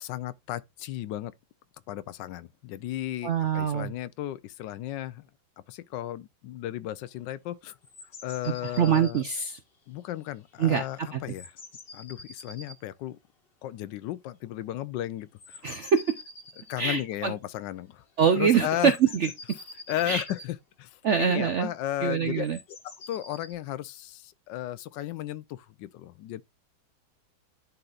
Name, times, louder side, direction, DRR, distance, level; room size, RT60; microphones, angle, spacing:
voice 1, 0.0-1.3 1.9-5.3 5.7-7.8 8.2-9.2 9.9-11.5 11.9-13.2 13.6-15.8 16.7-18.0 18.4-19.0 19.9-22.5 22.8-26.4, left 13 dB, 80° left, 1.2 m, -35 dB
voice 2, 3.2-3.9 8.8-9.6 10.6-10.8 11.1-11.2 15.6-16.0 16.8-17.3 18.2-19.3 20.1-20.2 21.0-21.7 22.0-22.6, right 7 dB, 70° right, 0.7 m, -24 dB
sound 1, 7.8-9.3 10.5-10.7 10.9-11.0 11.3-12.8 15.4-16.8 18.0-18.1 18.3-18.4 18.8-20.5 22.4-23.5, left 2 dB, 35° left, 1.3 m, -46 dB
11.0 x 4.0 x 2.4 m
omnidirectional pair, 2.0 m